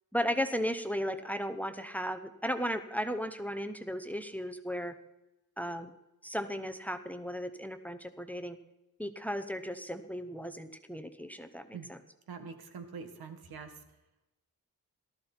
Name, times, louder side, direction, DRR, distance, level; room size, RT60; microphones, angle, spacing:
voice 1, 0.1-4.9 5.6-5.9 6.2-8.6 9.0-12.0, equal, 5° left, 10 dB, 0.8 m, -35 dB
voice 2, 12.3-13.8, right 5 dB, 85° right, 7 dB, 1.9 m, -44 dB
18.0 x 13.5 x 4.5 m, 0.96 s
wide cardioid pair, 145°, 36 cm